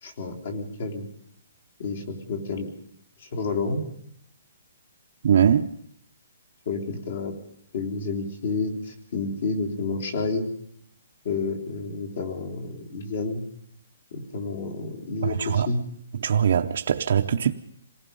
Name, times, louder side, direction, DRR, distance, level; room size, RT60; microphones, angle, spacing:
voice 1, 0.0-1.1 1.8-2.7 3.2-3.8 6.7-7.3 7.7-10.5 11.2-13.4 14.1-15.8, left 3 dB, 45° left, 3.6 m, -30 dB
voice 2, 5.2-5.7 15.2-15.7 16.1-17.5, right 8 dB, 45° right, 0.8 m, -21 dB
27.0 x 18.5 x 5.5 m
hypercardioid pair, 180°, 0 cm